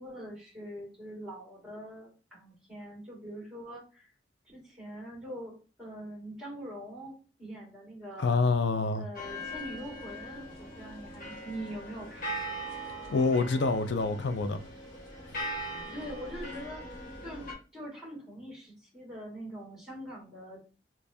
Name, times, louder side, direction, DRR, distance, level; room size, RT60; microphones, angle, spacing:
voice 1, 0.0-4.1 4.4-5.5 5.8-8.4 9.0-12.4 15.9-20.6, equal, 5° right, 1.9 m, -43 dB
voice 2, 8.2-9.0 13.1-14.6, left 3 dB, 75° left, 0.4 m, -26 dB
sound 1, 9.1-17.5, equal, 50° left, 1.0 m, -40 dB
3.4 x 3.0 x 2.7 m
head